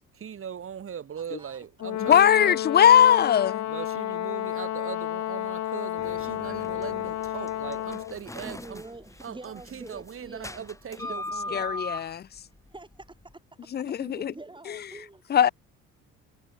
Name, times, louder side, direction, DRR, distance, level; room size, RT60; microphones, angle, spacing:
voice 1, 0.1-2.6 3.7-8.8 9.2-11.6, right 8 dB, 40° right, 1.8 m, -40 dB
voice 2, 1.2-1.6 2.6-2.8 8.4-11.9 12.7-15.2, right 2 dB, 15° right, 7.1 m, -46 dB
Brass instrument, 1.8-8.2, left 12 dB, 60° left, 1.6 m, -31 dB
voice 3, 2.1-3.7 11.5-12.2 13.7-14.3 14.7-14.8 15.3-15.5, left 9 dB, 30° left, 0.5 m, -20 dB
sound 1, 6.0-13.3, left 2 dB, 10° left, 1.8 m, -40 dB
hypercardioid pair, 65°, 32 cm